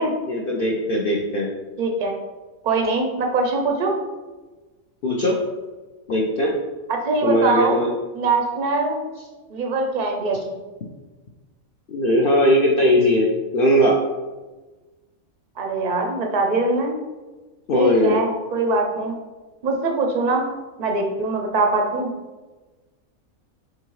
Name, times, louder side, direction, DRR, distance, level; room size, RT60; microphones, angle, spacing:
voice 1, 0.3-1.5 5.0-5.3 6.1-6.5 7.2-7.9 11.9-14.0 17.7-18.2, equal, 60° left, -1 dB, 0.5 m, -19 dB
voice 2, 1.8-2.2 2.6-4.0 6.9-7.8 8.1-9.0 9.5-10.6 15.6-17.0 17.7-19.2 19.6-20.5 20.8-22.1, right 3 dB, 55° right, 3 dB, 0.5 m, -22 dB
6.4 x 2.5 x 3.1 m, 1.2 s
omnidirectional pair, 1.5 m